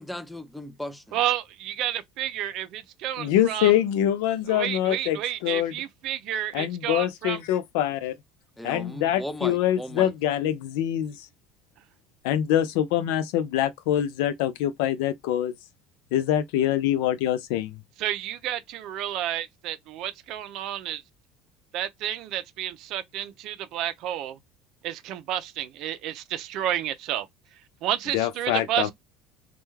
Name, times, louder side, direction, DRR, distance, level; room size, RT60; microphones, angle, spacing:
voice 1, 0.0-1.2 8.6-10.1, left 1 dB, ahead, 0.4 m, -36 dB
voice 2, 1.1-3.8 4.5-7.4 18.0-21.0 21.7-24.4 24.8-27.3 27.8-28.9, right 11 dB, 65° right, 0.4 m, -30 dB
voice 3, 3.2-5.2 5.4-5.7 6.5-8.1 8.6-11.2 12.2-15.5 16.1-17.8 28.1-28.9, left 11 dB, 80° left, 0.4 m, -24 dB
2.3 x 2.2 x 3.0 m
supercardioid pair, 100°, 0 cm